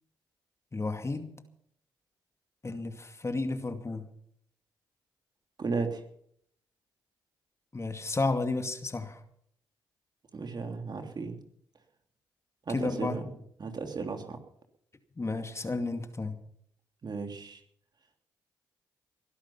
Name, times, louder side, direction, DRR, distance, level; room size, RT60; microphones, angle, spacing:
voice 1, 0.7-1.3 2.6-4.1 7.7-9.2 12.7-13.2 15.2-16.4, left 3 dB, 30° left, 7 dB, 2.4 m, -32 dB
voice 2, 5.6-6.0 10.3-11.4 12.7-13.2 13.6-14.4 17.0-17.6, right 4 dB, 45° right, 5 dB, 3.1 m, -34 dB
21.0 x 11.5 x 5.7 m, 0.66 s
hypercardioid pair, 45°, 10 cm